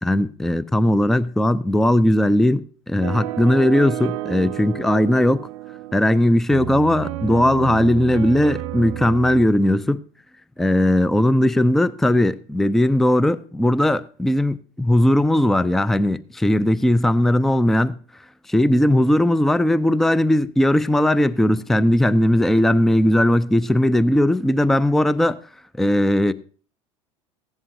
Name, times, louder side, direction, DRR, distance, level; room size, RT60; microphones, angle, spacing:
voice 1, 0.0-2.6 2.9-5.5 5.9-10.0 10.6-18.0 18.5-25.4 25.8-26.3, left 1 dB, ahead, 0.4 m, -18 dB
sound 1, 3.0-9.5, right 14 dB, 70° right, 0.6 m, -31 dB
15.5 x 10.5 x 2.7 m
hypercardioid pair, 75°, 17 cm